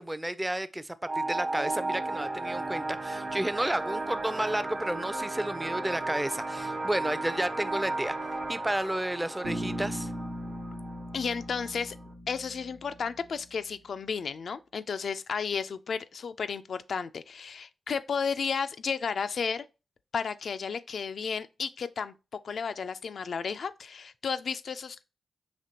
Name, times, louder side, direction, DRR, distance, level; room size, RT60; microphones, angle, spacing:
voice 1, 0.0-8.2 8.5-10.1, right 1 dB, 15° right, 0.4 m, -31 dB
sound 1, 1.1-12.1, right 2 dB, 45° right, 1.1 m, -35 dB
Bass guitar, 9.4-13.3, equal, 80° right, 0.8 m, -38 dB
voice 2, 11.1-12.0 12.3-19.6 20.1-22.1 22.4-25.0, left 6 dB, 70° left, 0.3 m, -33 dB
5.0 x 2.9 x 2.8 m
supercardioid pair, 50°, 0 cm